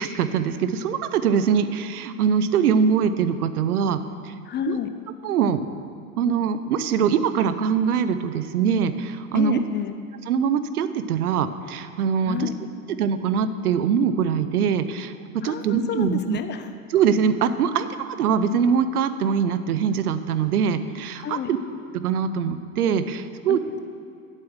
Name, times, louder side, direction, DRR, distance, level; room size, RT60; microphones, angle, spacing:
voice 1, 0.0-4.4 4.7-4.8 5.2-5.6 6.2-9.6 10.3-12.5 13.0-16.4 16.9-21.6 21.9-23.6, right 7 dB, 85° right, 11 dB, 0.7 m, -23 dB
voice 2, 4.4-4.9 9.3-10.0 12.3-12.5 15.4-16.7 21.2-21.5 23.5-23.8, left 9 dB, 25° left, 9 dB, 0.6 m, -30 dB
8.9 x 7.7 x 6.2 m, 2.4 s
hypercardioid pair, 95°, 44 cm